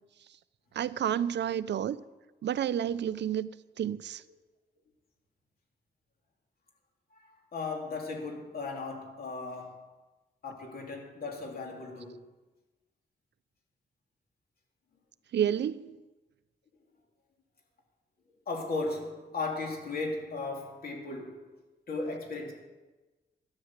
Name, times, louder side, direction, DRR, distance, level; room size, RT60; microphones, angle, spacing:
voice 1, 0.7-2.0 2.4-3.5 3.8-4.2 15.3-16.0, right 9 dB, 80° right, 0.5 m, -30 dB
voice 2, 7.1-9.8 10.4-12.2 18.5-21.5 21.9-22.5, left 3 dB, 60° left, 3.0 m, -36 dB
13.5 x 10.0 x 7.4 m
wide cardioid pair, 160°, 18 cm